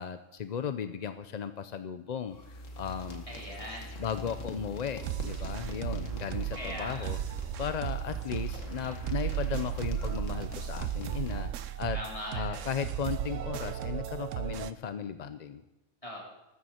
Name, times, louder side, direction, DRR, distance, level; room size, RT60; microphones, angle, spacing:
voice 1, 0.0-3.3 4.0-7.2 7.6-12.0 12.3-15.6, left 7 dB, 50° left, 10 dB, 0.5 m, -36 dB
sound 1, 2.3-11.7, equal, 80° left, 1.9 m, -43 dB
voice 2, 3.3-3.9 6.5-7.1 11.9-12.7 16.0-16.2, equal, 25° left, -4 dB, 4.0 m, -40 dB
sound 2, 5.0-14.7, right 11 dB, 80° right, 1.0 m, -35 dB
14.5 x 12.5 x 4.3 m, 0.95 s
omnidirectional pair, 1.3 m